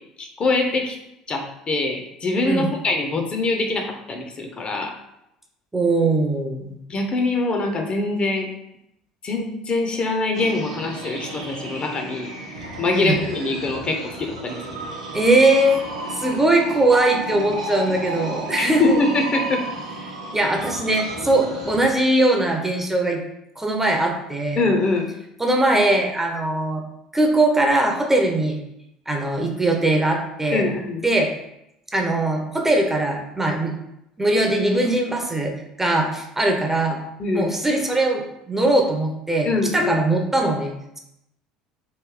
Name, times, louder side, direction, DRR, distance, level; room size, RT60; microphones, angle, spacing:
voice 1, 0.2-1.0 1.3-4.9 6.9-8.5 9.2-12.3 12.8-14.8 18.6-19.6 24.6-25.1 30.5-31.1 37.2-37.5 39.5-40.0, left 3 dB, 35° left, 3 dB, 0.7 m, -23 dB
voice 2, 5.7-6.8 12.9-13.2 15.1-15.8 16.2-19.0 20.3-23.2 23.6-24.6 25.4-26.8 27.1-28.6 29.1-30.7 31.0-31.3 31.9-33.7 34.2-35.5 35.8-37.0 37.3-41.0, right 2 dB, 10° right, 2 dB, 0.7 m, -20 dB
sound 1, 10.3-21.9, right 2 dB, 85° right, 0.8 m, -32 dB
3.1 x 2.6 x 3.7 m, 0.82 s
hypercardioid pair, 65°, 3 cm